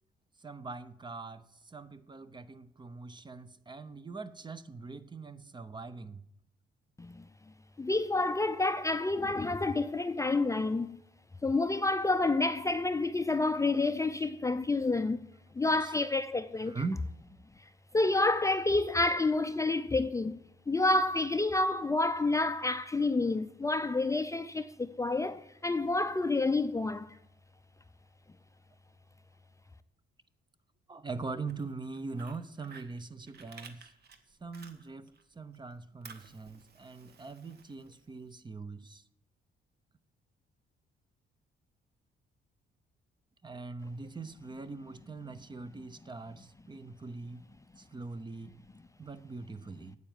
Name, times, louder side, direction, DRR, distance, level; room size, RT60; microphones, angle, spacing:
voice 1, 0.4-6.2 15.8-15.9 16.6-17.0 30.9-33.9 34.4-39.0 43.4-47.4 47.8-48.6 49.0-50.0, right 3 dB, 20° right, 0.8 m, -42 dB
voice 2, 7.8-11.0 11.4-15.3 15.6-16.8 17.9-20.4 20.7-27.2, left 2 dB, 15° left, 0.5 m, -29 dB
Fire, 31.3-35.2 35.5-38.3, right 5 dB, 55° right, 1.5 m, -55 dB
9.5 x 8.1 x 9.1 m
cardioid pair, 90°, 20 cm